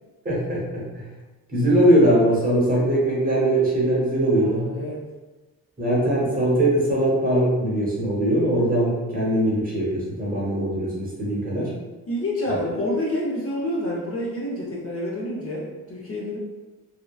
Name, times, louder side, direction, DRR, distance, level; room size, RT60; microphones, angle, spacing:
voice 1, 0.2-1.1 1.5-4.7 5.8-11.7, right 1 dB, 25° right, -6 dB, 0.8 m, -21 dB
voice 2, 4.4-5.0 12.1-16.4, left 1 dB, 40° left, -5 dB, 0.6 m, -28 dB
2.9 x 2.2 x 2.3 m, 1.2 s
cardioid pair, 120°, 37 cm